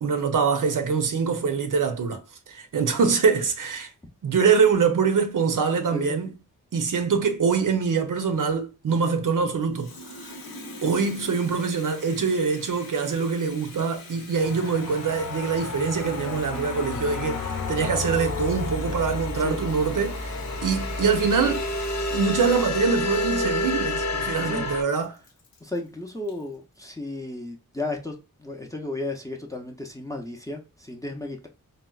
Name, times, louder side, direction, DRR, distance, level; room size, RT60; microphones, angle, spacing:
voice 1, 0.0-2.2 2.5-3.9 4.2-6.3 6.7-10.0 10.8-20.4 20.6-21.7 22.1-25.2, right 5 dB, 65° right, 0.6 m, -24 dB
Water tap faucet, 9.6-26.5, left 3 dB, 80° left, 0.8 m, -45 dB
sound 1, 14.4-24.8, left 2 dB, 50° left, 0.7 m, -30 dB
voice 2, 25.6-31.5, left 2 dB, 10° left, 0.5 m, -34 dB
4.1 x 2.0 x 2.3 m
wide cardioid pair, 125°, 35 cm